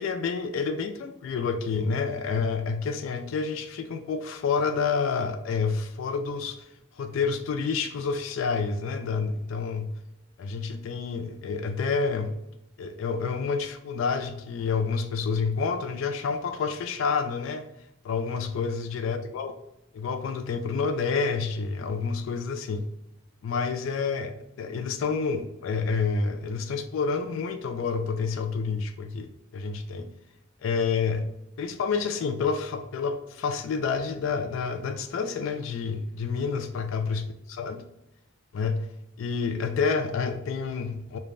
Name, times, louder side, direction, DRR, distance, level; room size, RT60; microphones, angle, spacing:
voice 1, 0.0-6.7 7.0-9.9 10.4-12.3 12.8-17.7 18.0-19.5 19.9-22.9 23.4-30.1 30.6-31.3 31.6-37.8 38.5-38.9 39.2-41.2, left 5 dB, 75° left, 8 dB, 0.3 m, -29 dB
3.2 x 2.1 x 2.4 m, 0.83 s
head